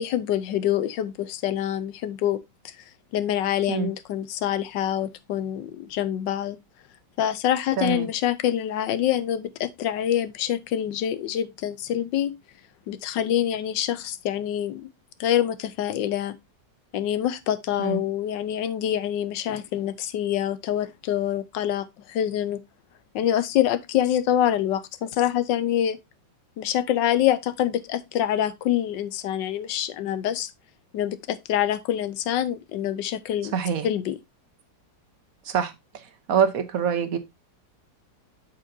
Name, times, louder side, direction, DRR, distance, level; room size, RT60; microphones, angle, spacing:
voice 1, 0.0-2.4 2.6-2.8 3.1-6.6 7.2-12.3 12.9-14.8 15.2-16.3 16.9-22.6 23.1-26.0 26.6-30.5 30.9-33.5 33.8-34.2, left 11 dB, 85° left, 1.4 m, -26 dB
voice 2, 7.8-8.1 17.8-18.0 33.5-33.9 35.5-35.7 36.3-37.2, right 7 dB, 60° right, 1.1 m, -24 dB
8.1 x 6.6 x 2.6 m
omnidirectional pair, 1.9 m